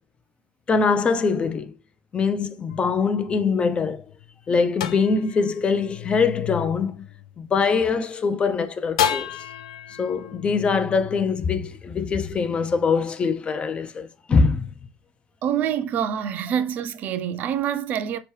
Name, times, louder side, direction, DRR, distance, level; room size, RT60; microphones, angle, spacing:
voice 1, 0.7-1.7 2.1-4.0 4.5-7.1 7.4-9.3 10.0-14.8, left 5 dB, 30° left, 0.5 m, -23 dB
sound 1, 2.7-8.0 9.0-12.3, left 9 dB, 90° left, 0.3 m, -33 dB
voice 2, 15.4-18.2, right 9 dB, 50° right, 0.5 m, -26 dB
4.3 x 2.9 x 3.2 m
supercardioid pair, 90°, 4 cm